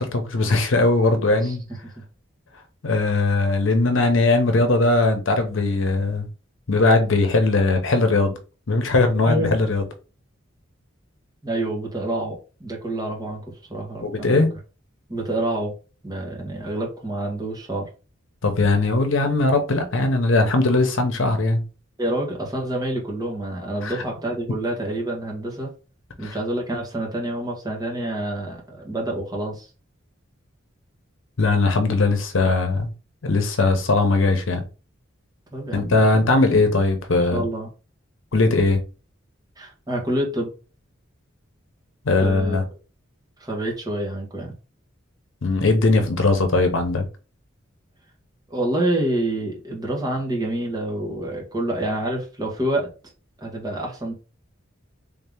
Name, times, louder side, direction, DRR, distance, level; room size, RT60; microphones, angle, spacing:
voice 1, 0.0-1.6 2.8-6.3 6.7-8.3 8.7-9.8 14.0-14.5 18.4-21.6 23.8-24.0 26.2-26.4 31.4-32.9 33.2-34.6 35.7-37.4 38.3-38.8 42.0-42.6 45.4-47.1, left 2 dB, 70° left, 0.8 m, -19 dB
voice 2, 11.4-13.4 13.7-14.4 15.1-15.7 16.0-17.9 22.0-25.7 26.2-29.7 35.5-36.2 37.2-37.7 39.6-40.5 42.1-42.6 43.4-44.5 48.5-52.9 53.4-54.1, right 1 dB, 20° right, 1.2 m, -27 dB
3.6 x 2.8 x 3.5 m
head